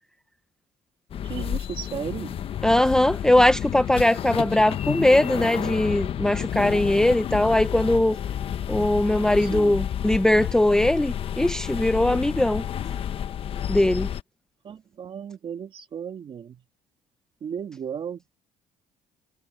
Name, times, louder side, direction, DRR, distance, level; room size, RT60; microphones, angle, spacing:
sound 1, 1.1-14.2, left 9 dB, 45° left, 1.1 m, -30 dB
voice 1, 1.2-2.4 9.4-9.8 14.6-16.6 17.4-18.2, right 8 dB, 40° right, 2.5 m, -35 dB
voice 2, 2.6-8.2 8.7-12.6 13.7-14.1, left 1 dB, 5° left, 0.6 m, -20 dB
cardioid pair, 120°, 13 cm